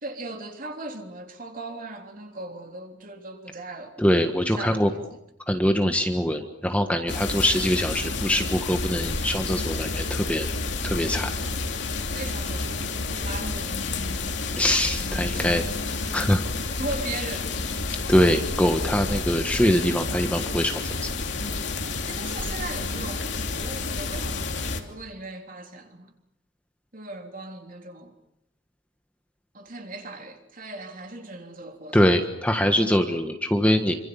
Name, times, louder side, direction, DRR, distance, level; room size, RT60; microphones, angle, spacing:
voice 1, 0.0-4.0 4.6-5.0 12.1-13.9 15.3-15.5 15.9-16.1 16.8-17.6 22.1-26.1 26.9-28.1 29.5-32.0, right 2 dB, 40° right, 3.5 m, -38 dB
voice 2, 4.0-4.9 5.5-10.5 10.8-11.3 14.6-15.6 16.1-16.4 18.1-21.1 31.9-33.9, equal, 5° left, 1.5 m, -23 dB
sound 1, 7.1-24.8, left 3 dB, 60° left, 3.1 m, -30 dB
28.0 x 26.0 x 7.1 m
head